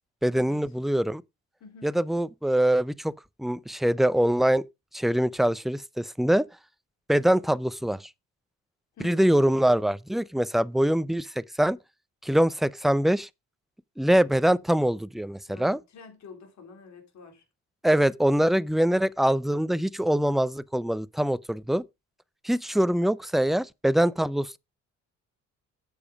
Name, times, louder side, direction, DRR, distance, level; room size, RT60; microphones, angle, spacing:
voice 1, 0.2-1.2 1.8-3.1 3.4-4.6 4.9-6.5 7.1-8.1 9.0-11.8 12.2-13.3 14.0-15.8 17.8-21.8 22.4-24.6, right 1 dB, ahead, 0.4 m, -24 dB
voice 2, 1.6-1.9 9.0-9.2 15.5-17.4, left 4 dB, 65° left, 3.7 m, -47 dB
8.5 x 7.0 x 5.0 m
cardioid pair, 90°, 30 cm